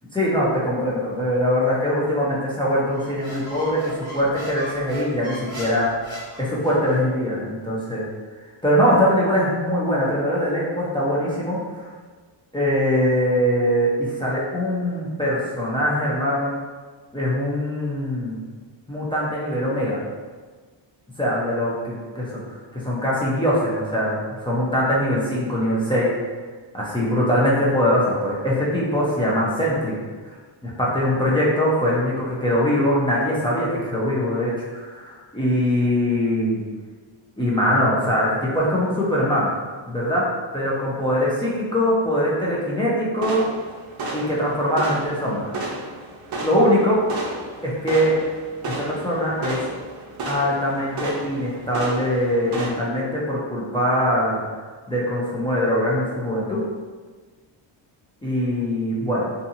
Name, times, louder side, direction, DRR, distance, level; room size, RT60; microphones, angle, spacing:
voice 1, 0.1-5.9 6.4-8.0 8.6-11.9 12.5-16.5 17.1-18.4 18.9-20.0 21.2-22.3 22.8-24.1 24.4-26.1 26.7-29.9 30.6-36.6 37.4-39.5 39.9-40.3 40.5-43.4 44.1-45.5 46.4-47.0 47.6-48.1 48.7-49.6 50.3-54.4 54.9-56.6 58.2-59.2, equal, 10° left, -7 dB, 0.5 m, -22 dB
Squeak, 2.9-7.0, right 1 dB, 10° right, 1.1 m, -37 dB
sound 1, 43.2-52.7, right 2 dB, 50° right, 0.6 m, -33 dB
2.6 x 2.5 x 2.6 m, 1.4 s
cardioid pair, 125°, 48 cm